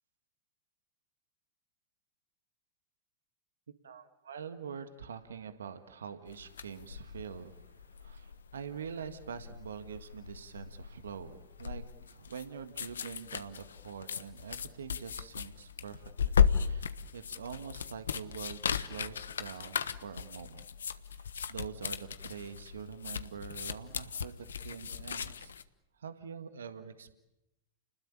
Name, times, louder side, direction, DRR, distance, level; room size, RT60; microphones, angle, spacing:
voice 1, 3.8-20.7 21.1-25.5 25.9-27.1, right 7 dB, 80° right, 10 dB, 1.7 m, -45 dB
sound 1, 6.3-25.6, left 7 dB, 80° left, 1.1 m, -36 dB
30.0 x 20.5 x 8.7 m, 0.93 s
hypercardioid pair, 100°, 0 cm